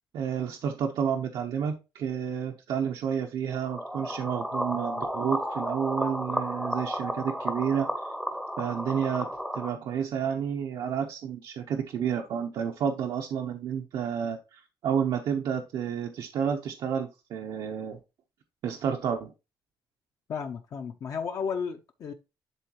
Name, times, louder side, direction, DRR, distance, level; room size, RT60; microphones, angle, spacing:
voice 1, 0.1-8.1 8.6-18.0 18.6-19.3, right 8 dB, 80° right, 0.9 m, -30 dB
sound 1, 3.6-9.7, equal, ahead, 0.7 m, -32 dB
voice 2, 20.3-22.1, left 6 dB, 50° left, 0.7 m, -33 dB
11.0 x 3.8 x 3.0 m
cardioid pair, 165°, 8 cm